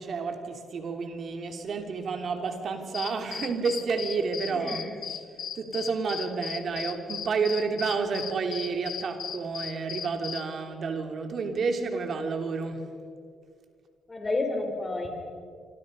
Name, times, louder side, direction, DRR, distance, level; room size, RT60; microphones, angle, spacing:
voice 1, 0.0-4.8 5.3-12.9, right 4 dB, 55° right, 5 dB, 3.1 m, -30 dB
sound 1, 2.9-10.5, left 8 dB, 60° left, 1.4 m, -37 dB
voice 2, 4.5-5.0 14.1-15.2, left 2 dB, 25° left, 4 dB, 4.8 m, -31 dB
26.0 x 26.0 x 5.5 m, 2.2 s
cardioid pair, 90°, 0 cm